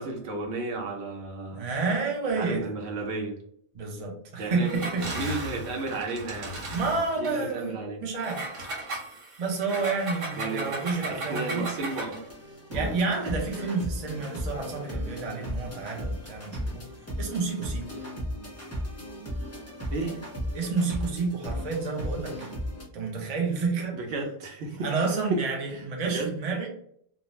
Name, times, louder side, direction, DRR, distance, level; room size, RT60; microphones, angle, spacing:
voice 1, 0.0-1.7 2.3-3.4 4.4-6.6 7.2-8.0 10.4-10.7 11.1-12.2 12.7-12.9 19.9-20.2 23.9-24.9 25.3-25.4 25.7-26.3, right 3 dB, 65° right, 1 dB, 0.9 m, -33 dB
voice 2, 1.5-2.7 3.7-5.3 6.7-8.5 9.4-11.7 12.7-16.8 17.2-17.9 20.5-22.5 22.9-24.0 24.8-26.7, right 4 dB, 45° right, 1 dB, 0.5 m, -30 dB
Engine, 4.6-7.4 8.2-12.3, right 1 dB, 85° right, 1.1 m, -36 dB
Cool Chill Beat Loop, 11.9-22.8, equal, 20° left, 0.4 m, -36 dB
2.6 x 2.0 x 3.0 m, 0.66 s
omnidirectional pair, 1.3 m